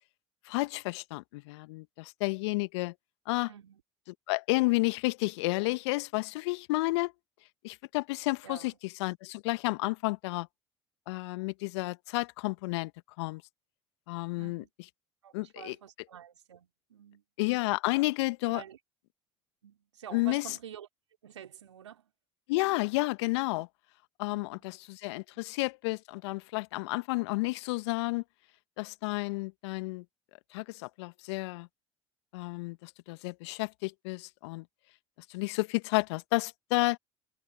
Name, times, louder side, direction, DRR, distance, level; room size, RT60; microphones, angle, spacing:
voice 1, 0.5-2.9 3.3-3.5 4.3-7.1 7.6-8.7 9.0-10.5 11.1-12.9 13.2-13.4 14.1-14.6 15.3-15.7 17.4-18.6 20.1-20.5 22.5-23.7 24.2-28.2 28.8-30.0 30.5-31.7 32.3-34.6 35.3-37.0, left 23 dB, 70° left, 1.5 m, -31 dB
voice 2, 3.5-3.8 8.4-8.8 14.4-14.7 15.2-17.2 18.5-18.8 19.6-20.9 21.2-22.1 24.3-24.7, right 9 dB, 80° right, 4.1 m, -48 dB
figure-of-eight pair, 60°, 15 cm